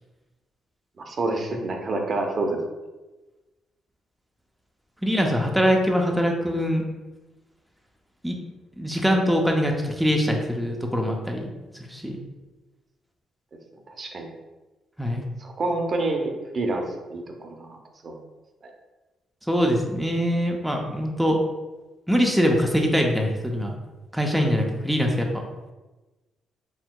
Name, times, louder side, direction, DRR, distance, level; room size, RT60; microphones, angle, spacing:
voice 1, 1.1-2.6 13.9-14.3 15.4-16.8 17.1-17.8 18.0-18.1, right 2 dB, 45° right, 2 dB, 0.6 m, -27 dB
voice 2, 5.0-6.8 8.2-8.4 8.8-11.5 11.9-12.2 15.0-15.3 19.5-21.4 22.1-23.7 24.1-25.4, equal, 5° right, 1 dB, 0.5 m, -23 dB
4.4 x 3.4 x 2.2 m, 1.1 s
cardioid pair, 90°, 0 cm